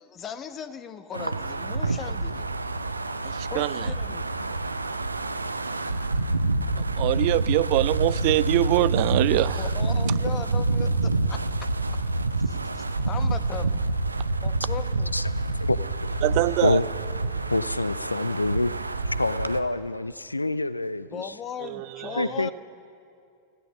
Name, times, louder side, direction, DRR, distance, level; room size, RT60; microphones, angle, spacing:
voice 1, 0.0-2.5 3.5-4.3 9.6-11.4 12.4-13.8 14.4-15.1 21.1-22.5, left 7 dB, 30° left, 1.1 m, -38 dB
Wind, 1.1-19.6, right 2 dB, 80° right, 0.7 m, -27 dB
voice 2, 3.2-3.9 6.8-9.7 16.2-16.8 21.6-22.3, right 18 dB, 45° right, 0.5 m, -24 dB
voice 3, 15.5-16.2 16.6-16.9 17.5-18.7 19.0-21.3 22.2-22.5, left 2 dB, 85° left, 0.5 m, -26 dB
30.0 x 16.0 x 5.5 m
figure-of-eight pair, 90°, 0 cm